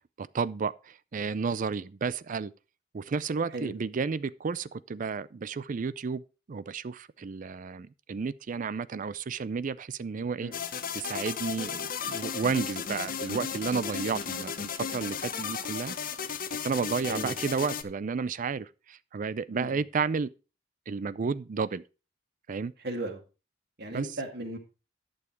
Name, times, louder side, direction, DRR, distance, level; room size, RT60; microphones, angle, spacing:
voice 1, 0.2-2.5 2.9-6.2 6.5-10.5 10.9-15.9 16.6-20.3 20.9-21.8 22.5-22.7 23.9-24.1, right 5 dB, 45° right, 0.4 m, -32 dB
sound 1, 10.5-17.8, left 6 dB, 50° left, 0.9 m, -35 dB
voice 2, 17.0-17.3 19.5-19.8 22.8-23.2 23.8-24.6, right 1 dB, 60° right, 2.4 m, -35 dB
11.5 x 7.0 x 4.7 m
head